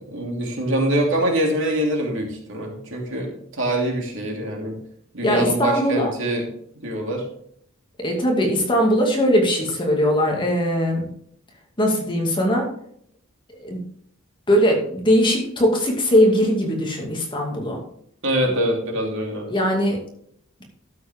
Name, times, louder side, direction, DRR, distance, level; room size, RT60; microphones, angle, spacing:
voice 1, 0.1-4.8 5.1-6.4 6.8-7.2 18.2-19.5, right 1 dB, 65° right, 0 dB, 2.9 m, -24 dB
voice 2, 5.2-6.1 8.0-11.1 11.8-12.7 13.5-13.8 14.5-17.8 19.5-20.0, equal, 25° left, 0 dB, 2.3 m, -20 dB
12.0 x 7.9 x 3.7 m, 0.66 s
head